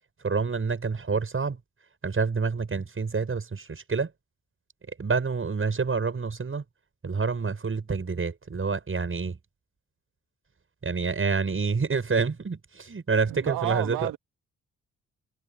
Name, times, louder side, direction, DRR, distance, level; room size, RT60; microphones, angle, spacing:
voice 1, 0.2-1.6 2.0-4.1 5.0-6.6 7.0-9.4 10.8-14.1, right 4 dB, 40° right, 8.0 m, -27 dB
voice 2, 13.3-14.2, right 16 dB, 85° right, 2.8 m, -31 dB
supercardioid pair, 60°, 34 cm